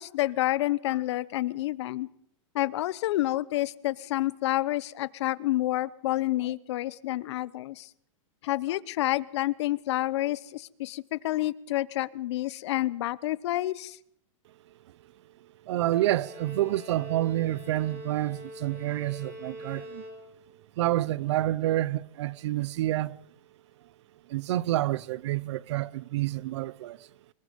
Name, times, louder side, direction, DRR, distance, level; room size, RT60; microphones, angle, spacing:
voice 1, 0.0-2.1 2.5-7.9 8.4-14.0, left 15 dB, 55° left, 0.9 m, -29 dB
voice 2, 15.6-20.0 20.8-23.2 24.3-27.1, right 15 dB, 60° right, 0.8 m, -28 dB
Bowed string instrument, 15.9-20.6, left 1 dB, 15° right, 4.9 m, -44 dB
25.5 x 21.5 x 5.3 m
supercardioid pair, 165°, 17 cm